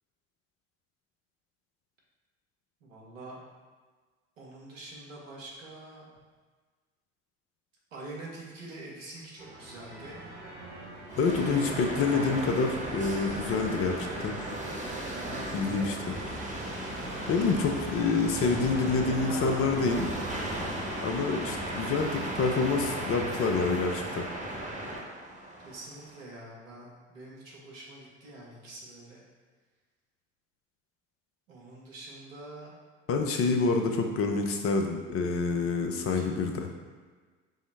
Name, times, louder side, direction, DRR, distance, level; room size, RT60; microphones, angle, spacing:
voice 1, 2.8-3.4 4.4-6.1 7.9-10.2 15.0-15.9 19.2-20.3 25.6-29.2 31.5-32.7 36.1-36.5, right 2 dB, 85° right, -4 dB, 1.0 m, -45 dB
sound 1, 9.4-24.0, right 1 dB, 70° right, 1.4 m, -42 dB
sound 2, 11.1-26.2, right 1 dB, 20° right, 1.0 m, -36 dB
voice 2, 11.2-14.4 15.5-15.9 17.3-20.1 21.0-24.2 33.1-36.7, left 4 dB, 35° left, 4 dB, 0.5 m, -27 dB
5.4 x 2.0 x 3.3 m, 1.4 s
hypercardioid pair, 65°, 38 cm